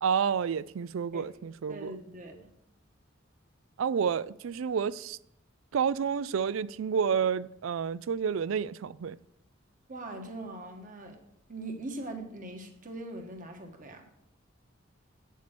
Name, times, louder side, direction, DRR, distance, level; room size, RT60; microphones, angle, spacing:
voice 1, 0.0-1.9 3.8-5.2 5.7-9.2, right 7 dB, 75° right, 0.4 m, -29 dB
voice 2, 1.7-2.5 9.9-11.2 11.5-14.0, right 2 dB, 40° right, 1.5 m, -41 dB
9.0 x 7.3 x 6.0 m
head